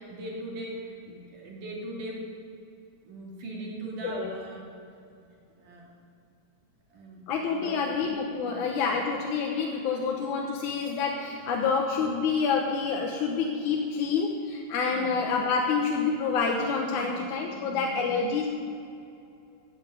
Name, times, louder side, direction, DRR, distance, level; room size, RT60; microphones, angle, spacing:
voice 1, 0.0-2.2 3.0-4.7 5.6-5.9 6.9-7.9 8.4-8.6 14.9-15.2 16.9-17.2 17.5-18.2, right 1 dB, 60° right, -3 dB, 3.9 m, -40 dB
voice 2, 7.3-18.5, left 5 dB, 65° left, 1 dB, 2.1 m, -28 dB
14.5 x 8.2 x 9.2 m, 2.6 s
omnidirectional pair, 4.4 m